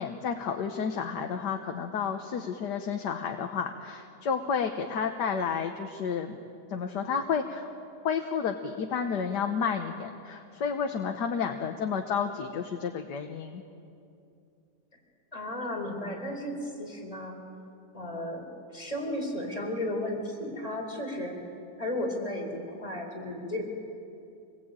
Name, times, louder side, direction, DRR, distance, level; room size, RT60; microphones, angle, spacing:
voice 1, 0.0-6.4 6.7-7.7 8.0-13.6, left 6 dB, 75° left, 5 dB, 1.7 m, -31 dB
voice 2, 15.3-17.4 17.9-18.4 18.7-21.3 21.8-23.6, left 1 dB, 20° left, 1 dB, 4.5 m, -34 dB
25.5 x 20.0 x 8.9 m, 2.6 s
omnidirectional pair, 1.8 m